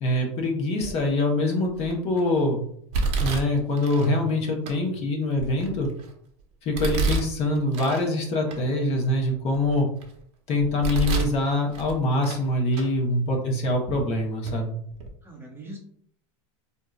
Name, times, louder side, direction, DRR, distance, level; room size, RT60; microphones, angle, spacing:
voice 1, 0.0-2.6 3.2-5.9 6.6-9.9 10.5-14.7, left 1 dB, 45° left, 0 dB, 1.0 m, -24 dB
Domestic sounds home sounds, 0.8-1.2 1.8-2.2 2.9-4.1 4.7-4.8 5.3-6.1 6.7-8.1 8.5-8.6 9.2-10.1 10.6-11.4 11.7-12.5 12.7-12.9 13.7-13.8 14.4-14.6 14.9-15.1, right 3 dB, 45° right, 0.9 m, -29 dB
voice 2, 4.3-5.0 12.9-13.1 15.2-15.8, right 1 dB, 15° right, -2 dB, 0.9 m, -44 dB
3.9 x 2.8 x 2.4 m, 0.64 s
supercardioid pair, 115°, 15 cm